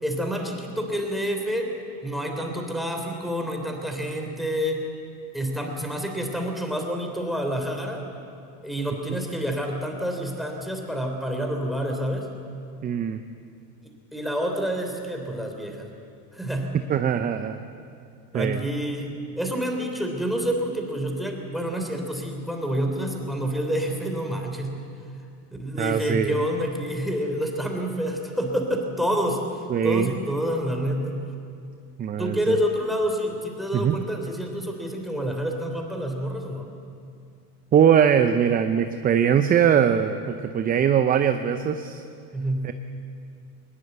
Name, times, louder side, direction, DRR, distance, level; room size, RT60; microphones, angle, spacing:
voice 1, 0.0-1.7 2.0-4.8 5.3-8.0 8.6-12.3 14.1-16.0 16.3-16.8 18.3-24.8 25.6-31.2 32.2-36.7 42.3-42.6, equal, ahead, 2 dB, 3.3 m, -28 dB
voice 2, 12.8-13.2 16.9-17.6 18.3-18.6 25.8-26.4 29.7-30.1 32.0-32.6 33.7-34.0 37.7-42.0 42.6-42.7, right 8 dB, 20° right, 9 dB, 0.6 m, -21 dB
21.0 x 20.0 x 8.0 m, 2.4 s
supercardioid pair, 125°, 47 cm